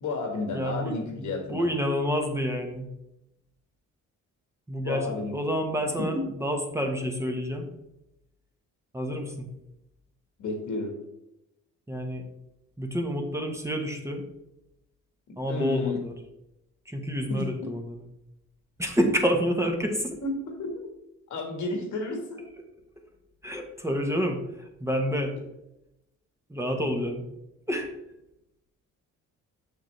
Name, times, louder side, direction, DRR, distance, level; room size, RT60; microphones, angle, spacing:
voice 1, 0.0-1.7 4.8-5.3 6.0-6.2 10.4-11.0 15.3-16.0 17.3-17.4 20.2-20.8 21.3-22.5, left 3 dB, 75° left, 4 dB, 1.7 m, -32 dB
voice 2, 0.5-2.9 4.7-7.7 8.9-9.5 11.9-12.2 12.8-14.2 15.4-16.1 16.9-17.9 18.8-20.2 23.4-25.4 26.5-27.2 27.7-27.9, equal, 10° right, 3 dB, 1.1 m, -28 dB
6.8 x 6.1 x 3.2 m, 0.88 s
cardioid pair, 90°, 30 cm